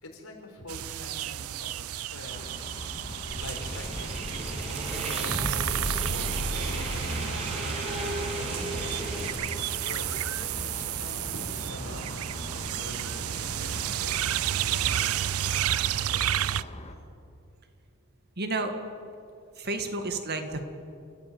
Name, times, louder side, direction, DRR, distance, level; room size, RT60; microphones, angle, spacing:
voice 1, 0.0-4.7 5.0-7.2 8.4-12.1 12.5-15.7 16.1-16.6, left 1 dB, 80° left, 2 dB, 4.7 m, -45 dB
sound 1, 0.7-16.6, right 11 dB, 85° right, 0.5 m, -31 dB
sound 2, 2.3-16.9, left 1 dB, 30° left, 2.0 m, -41 dB
sound 3, 3.3-9.3, equal, 30° right, 4.8 m, -34 dB
voice 2, 18.4-18.7 19.6-20.6, right 3 dB, 50° right, 7 dB, 2.0 m, -31 dB
29.5 x 14.5 x 8.7 m, 2.5 s
head